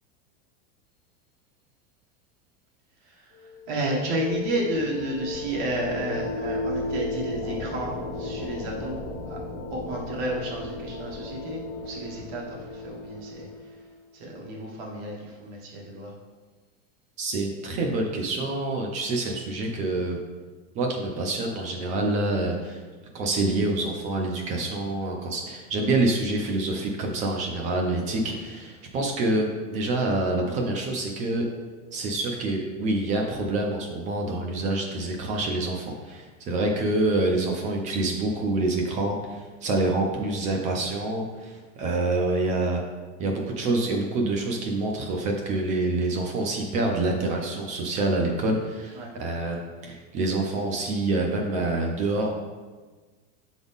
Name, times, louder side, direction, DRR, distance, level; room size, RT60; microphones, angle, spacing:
sound 1, 3.4-14.0, left 2 dB, 30° left, 1.2 m, -35 dB
voice 1, 3.7-9.0 9.2-9.4 9.7-13.5 14.1-16.1 48.9-49.1, right 1 dB, 55° right, -2 dB, 1.5 m, -31 dB
voice 2, 17.2-20.2 20.7-22.8 23.1-31.5 31.9-42.8 43.2-52.3, right 2 dB, 20° right, 1 dB, 0.3 m, -27 dB
6.8 x 4.0 x 3.5 m, 1.4 s
supercardioid pair, 160°, 38 cm